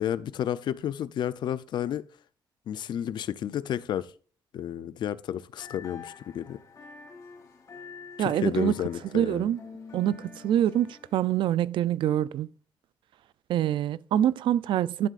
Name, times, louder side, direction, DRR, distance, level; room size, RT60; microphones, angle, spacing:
voice 1, 0.0-2.0 2.7-4.1 4.5-6.6 8.2-9.5, left 10 dB, 65° left, 0.5 m, -31 dB
sound 1, 5.6-11.2, left 5 dB, 40° left, 4.2 m, -47 dB
voice 2, 8.2-8.7 9.1-9.6 9.9-12.5 13.5-15.1, right 11 dB, 80° right, 0.4 m, -25 dB
11.0 x 7.5 x 2.5 m
wide cardioid pair, 160°, 8 cm